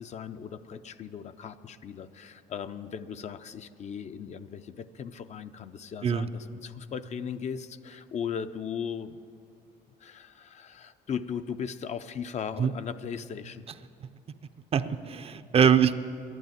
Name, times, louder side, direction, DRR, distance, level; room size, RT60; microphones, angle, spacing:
voice 1, 0.0-9.2 10.0-13.7, left 7 dB, 40° left, 10 dB, 0.5 m, -37 dB
voice 2, 14.7-15.9, right 8 dB, 35° right, 11 dB, 0.5 m, -23 dB
11.0 x 11.0 x 9.1 m, 2.3 s
cardioid pair, 110°, 17 cm